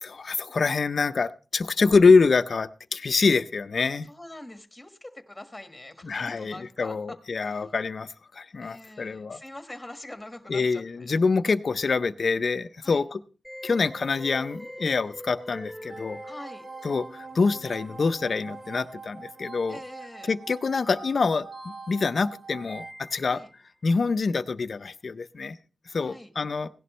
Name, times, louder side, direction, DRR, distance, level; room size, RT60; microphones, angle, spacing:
voice 1, 0.0-4.1 6.0-9.4 10.5-13.2 13.6-16.2 16.8-19.8 20.3-23.4 23.8-25.6 25.9-26.7, left 4 dB, 55° left, 0.5 m, -25 dB
voice 2, 4.1-7.6 8.6-11.2 12.8-13.0 16.2-16.6 19.7-20.3 23.3-23.5 25.9-26.3, left 1 dB, 10° left, 1.5 m, -44 dB
sound 1, 13.4-23.6, equal, 15° right, 2.3 m, -45 dB
sound 2, 15.9-22.9, right 5 dB, 50° right, 0.6 m, -45 dB
17.0 x 11.0 x 3.1 m
wide cardioid pair, 115°, 0 cm